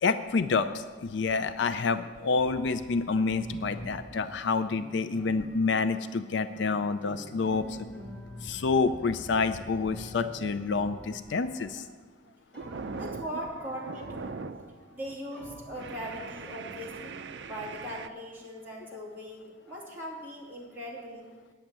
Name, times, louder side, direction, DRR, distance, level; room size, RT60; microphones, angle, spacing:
voice 1, 0.0-7.9 8.4-11.8, left 4 dB, 65° left, 12 dB, 0.4 m, -28 dB
sound 1, 2.4-5.8 6.5-11.6 12.5-15.0 15.3-16.4, left 1 dB, 5° left, 3.4 m, -46 dB
sound 2, 11.6-12.0 12.3-14.7 15.1-15.3 15.7-18.1, right 4 dB, 65° right, 0.5 m, -41 dB
voice 2, 12.9-14.4 14.9-21.3, equal, 10° right, -5 dB, 2.6 m, -40 dB
9.2 x 7.2 x 8.8 m, 1.4 s
head